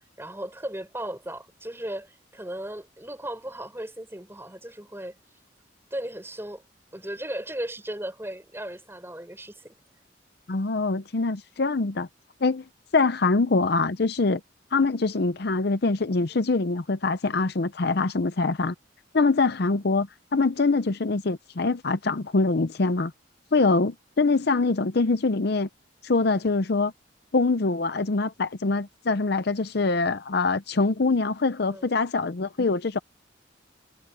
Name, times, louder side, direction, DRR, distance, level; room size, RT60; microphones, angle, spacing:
voice 1, 0.2-5.2 5.9-6.6 6.9-9.7 31.7-31.9, right 1 dB, 15° right, 5.6 m, -36 dB
voice 2, 10.5-12.1 12.4-12.6 12.9-14.4 14.7-18.7 19.1-23.1 23.5-25.7 26.0-26.9 27.3-33.0, left 3 dB, 55° left, 0.7 m, -24 dB
head